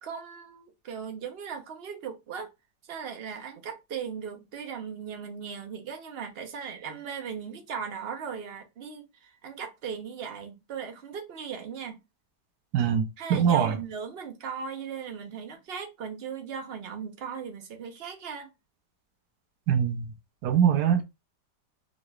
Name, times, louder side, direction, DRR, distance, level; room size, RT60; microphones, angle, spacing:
voice 1, 0.0-2.5 2.9-12.0 13.2-18.5, right 7 dB, 50° right, 0.8 m, -38 dB
voice 2, 12.7-13.0 13.3-13.8 19.7-20.1 20.4-21.0, right 8 dB, 80° right, 1.2 m, -22 dB
3.7 x 3.0 x 2.3 m
omnidirectional pair, 1.8 m